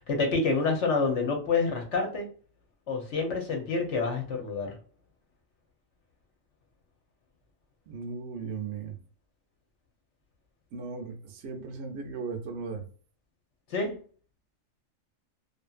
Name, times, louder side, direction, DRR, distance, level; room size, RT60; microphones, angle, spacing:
voice 1, 0.1-2.3 2.9-4.7 13.7-13.9, left 4 dB, 65° left, 2 dB, 1.0 m, -27 dB
voice 2, 7.9-9.0 10.7-12.8, right 5 dB, 65° right, 4 dB, 0.8 m, -37 dB
2.7 x 2.4 x 2.3 m, 0.42 s
omnidirectional pair, 1.3 m